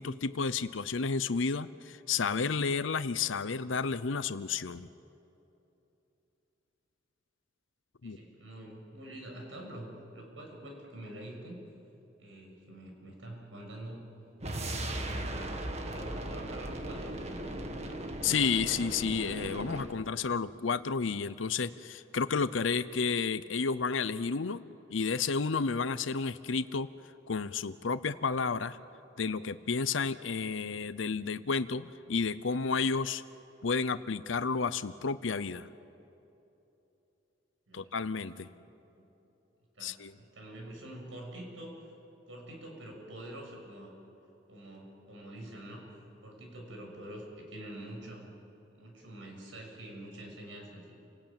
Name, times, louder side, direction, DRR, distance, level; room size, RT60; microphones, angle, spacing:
voice 1, 0.0-4.9 8.0-8.2 18.2-24.6 24.9-26.9 27.3-28.8 29.2-33.2 33.6-35.7 37.7-38.5 39.8-40.1, left 5 dB, 85° left, 14 dB, 0.7 m, -31 dB
voice 2, 8.0-11.6 12.2-14.1 14.5-15.5 15.9-17.2 37.7-37.9 38.5-38.6 38.9-39.1 39.7-41.8 42.3-43.9 44.5-48.3 48.7-51.0, right 1 dB, 90° right, 1 dB, 6.5 m, -46 dB
sound 1, 14.4-20.0, right 1 dB, 35° right, 1.8 m, -38 dB
29.5 x 18.5 x 8.9 m, 2.9 s
head